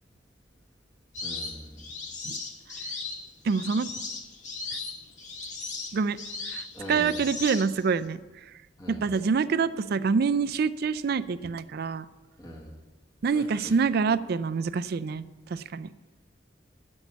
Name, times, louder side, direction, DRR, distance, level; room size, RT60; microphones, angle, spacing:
sound 1, 1.1-8.0, left 3 dB, 45° left, 1.6 m, -37 dB
voice 1, 1.2-1.9 6.7-7.2 8.8-9.0 12.4-12.8 13.3-13.7, equal, 25° left, -2 dB, 1.6 m, -42 dB
voice 2, 3.4-3.9 5.9-6.2 6.5-8.2 8.9-12.1 13.2-15.9, right 5 dB, 60° right, 15 dB, 0.4 m, -26 dB
11.5 x 5.4 x 8.2 m, 1.1 s
head